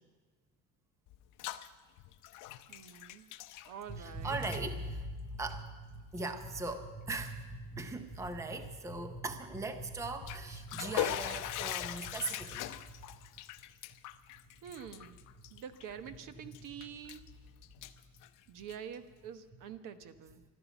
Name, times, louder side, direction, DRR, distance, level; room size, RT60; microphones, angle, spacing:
Bathtub (filling or washing), 1.1-1.7 2.0-4.1 4.3-4.6 5.4-5.5 6.2-6.3 6.7-6.8 10.0-16.1 16.5-17.3 17.6-18.9, left 13 dB, 55° left, 0.7 m, -41 dB
voice 1, 2.7-3.3 3.7-4.4 14.6-15.2 15.5-17.2 18.5-20.4, right 8 dB, 55° right, 10 dB, 1.1 m, -46 dB
voice 2, 3.9-13.1, right 2 dB, 10° right, 8 dB, 0.7 m, -39 dB
15.5 x 12.5 x 7.1 m, 1.4 s
cardioid pair, 165°, 37 cm